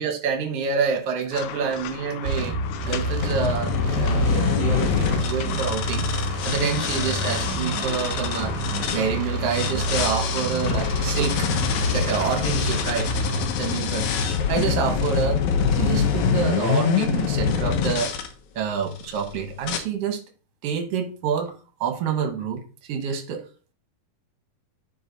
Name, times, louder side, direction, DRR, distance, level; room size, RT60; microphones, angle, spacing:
voice 1, 0.0-2.5 2.8-6.1 6.4-8.5 8.9-11.5 11.9-13.1 13.6-14.1 14.5-15.4 15.8-18.1 18.5-20.2 20.6-21.5 21.8-22.6 22.9-23.4, right 6 dB, 55° right, 4 dB, 1.8 m, -27 dB
sound 1, 1.3-13.8, left 12 dB, 85° left, 2.5 m, -36 dB
sound 2, 2.3-13.5, right 2 dB, 75° right, 2.2 m, -28 dB
sound 3, 3.2-9.0 9.5-18.3 18.9-19.2 19.6-19.8, left 6 dB, 70° left, 1.9 m, -25 dB
11.5 x 4.0 x 4.0 m, 0.36 s
omnidirectional pair, 4.3 m